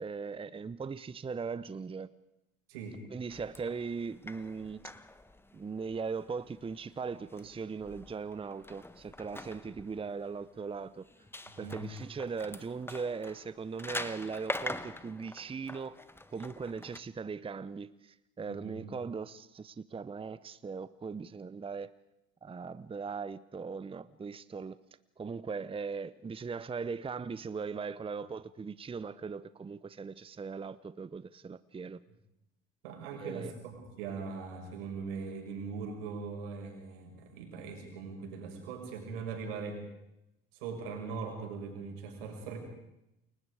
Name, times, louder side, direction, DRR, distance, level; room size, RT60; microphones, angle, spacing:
voice 1, 0.0-2.1 3.1-4.9 5.5-11.1 11.6-16.0 16.3-21.9 22.4-24.8 25.2-32.0 33.2-33.5, right 5 dB, 20° right, 0.8 m, -39 dB
voice 2, 2.7-3.0 11.5-11.9 18.5-18.8 32.8-39.8 40.6-42.6, right 5 dB, 75° right, 6.2 m, -40 dB
sound 1, 3.3-17.0, left 2 dB, 10° left, 1.4 m, -45 dB
29.5 x 21.0 x 4.9 m
hypercardioid pair, 65°, 29 cm